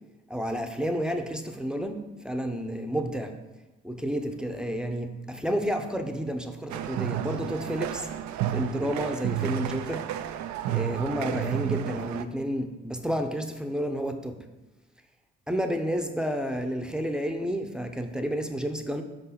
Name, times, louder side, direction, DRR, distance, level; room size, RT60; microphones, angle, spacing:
voice 1, 0.3-3.4 3.8-8.1 8.5-10.1 10.6-14.5 15.5-19.0, equal, 5° right, 6 dB, 0.7 m, -30 dB
sound 1, 6.7-12.2, right 10 dB, 65° right, 0.5 m, -31 dB
5.1 x 4.0 x 5.9 m, 1.1 s
hypercardioid pair, 50°, 31 cm